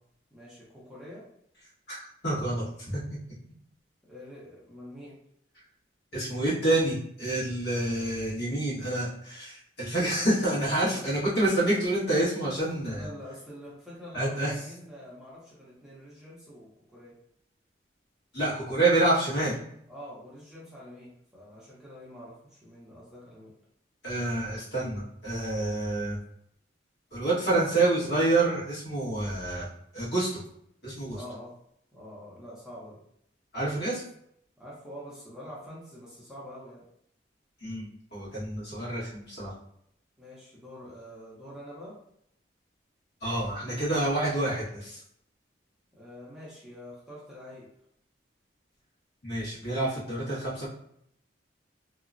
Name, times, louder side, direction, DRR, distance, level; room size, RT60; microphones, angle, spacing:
voice 1, 0.3-1.3 4.1-5.1 10.8-11.1 12.9-17.1 19.9-23.5 31.1-31.5 31.9-33.0 34.6-36.8 40.2-42.0 45.9-47.7, equal, 5° right, -8 dB, 0.6 m, -45 dB
voice 2, 1.9-3.0 6.1-13.1 14.1-14.5 18.3-19.5 24.0-26.2 27.1-29.7 29.9-30.4 30.8-31.2 33.5-34.0 37.6-39.5 43.2-45.0 49.2-50.7, right 2 dB, 65° left, -8 dB, 1.4 m, -28 dB
2.8 x 2.1 x 2.5 m, 0.72 s
head